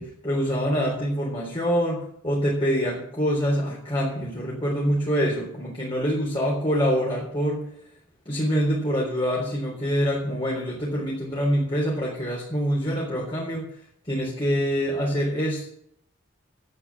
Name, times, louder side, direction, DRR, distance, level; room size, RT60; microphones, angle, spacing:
voice 1, 0.0-7.6 8.3-13.6 14.1-15.7, equal, 25° left, -4 dB, 3.7 m, -25 dB
11.0 x 9.1 x 7.1 m, 0.71 s
head